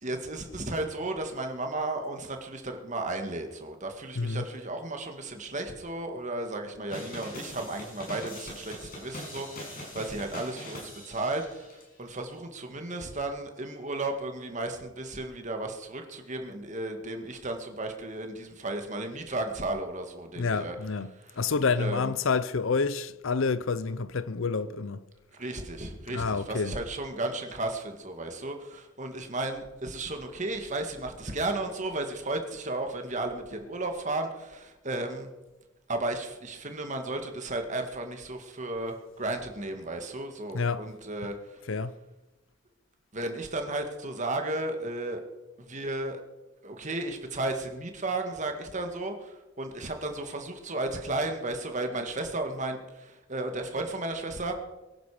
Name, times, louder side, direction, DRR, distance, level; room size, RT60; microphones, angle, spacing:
voice 1, 0.0-11.7 12.0-20.8 21.8-22.1 25.3-35.3 35.9-41.3 43.1-45.2 45.6-46.2 46.6-54.6, right 2 dB, 35° right, 1.9 m, -34 dB
voice 2, 4.2-4.5 20.4-25.1 26.1-26.8 40.5-40.9 41.2-41.3 41.7-42.0, left 4 dB, 70° left, 0.6 m, -29 dB
sound 1, 6.9-11.8, left 1 dB, 45° left, 6.1 m, -42 dB
23.5 x 11.0 x 5.0 m
head